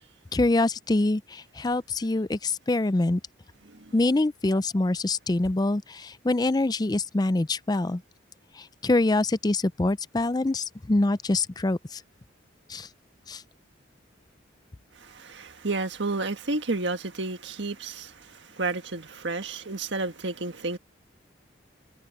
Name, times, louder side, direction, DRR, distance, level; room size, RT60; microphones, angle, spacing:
voice 1, 0.3-3.2 3.9-8.0 8.8-12.0 12.7-12.9 13.3-13.4, left 2 dB, 20° left, 0.4 m, -25 dB
voice 2, 15.0-20.8, right 3 dB, 70° right, 1.6 m, -31 dB
head